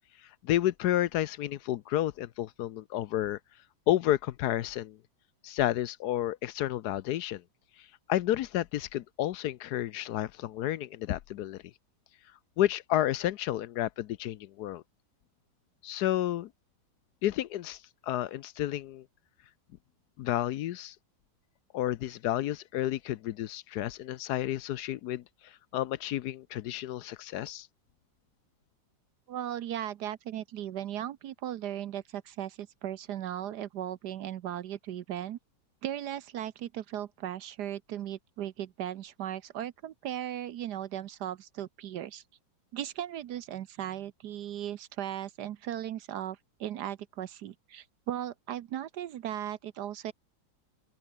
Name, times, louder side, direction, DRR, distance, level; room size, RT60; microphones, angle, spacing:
voice 1, 0.4-3.4 3.9-5.0 5.4-7.4 7.8-11.6 12.6-14.8 15.8-16.5 17.2-19.0 20.2-21.0 21.7-27.7, left 13 dB, 70° left, 1.1 m, -31 dB
voice 2, 29.3-35.4 35.8-42.2 42.7-50.1, right 11 dB, 70° right, 1.3 m, -37 dB
open air
omnidirectional pair, 2.0 m